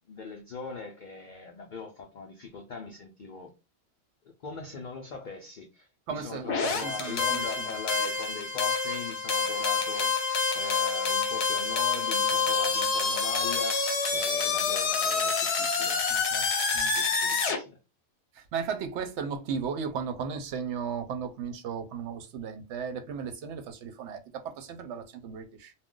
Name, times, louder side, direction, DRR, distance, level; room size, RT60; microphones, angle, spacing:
voice 1, 0.1-3.5 4.4-10.2 10.5-13.8 14.1-16.0 16.6-17.8, left 5 dB, 90° left, 0.4 m, -40 dB
voice 2, 6.1-7.7 16.1-16.5 16.7-17.0 18.3-25.7, right 6 dB, 65° right, 0.8 m, -36 dB
sound 1, 6.5-17.6, left 5 dB, 60° left, 0.9 m, -27 dB
2.4 x 2.2 x 3.6 m
omnidirectional pair, 1.4 m